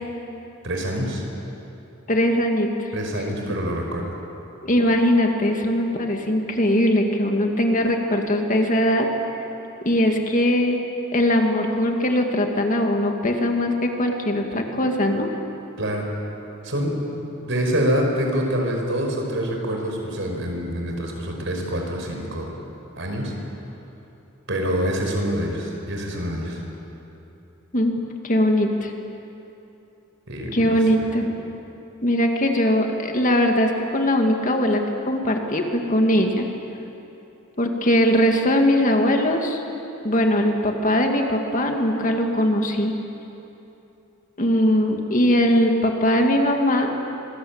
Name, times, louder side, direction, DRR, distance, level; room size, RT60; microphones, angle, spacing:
voice 1, 0.6-1.2 2.9-4.2 15.8-16.1 16.6-16.9 17.5-22.5 23.0-23.3 24.5-26.6 30.3-30.7, equal, 60° right, 1 dB, 5.2 m, -26 dB
voice 2, 2.1-2.9 4.6-9.1 9.8-10.8 11.1-15.3 27.7-28.0 28.2-28.9 30.5-31.3 32.0-36.5 37.6-39.6 40.0-42.9 44.4-46.9, left 1 dB, 40° left, 3 dB, 2.2 m, -20 dB
26.0 x 21.0 x 8.8 m, 2.9 s
head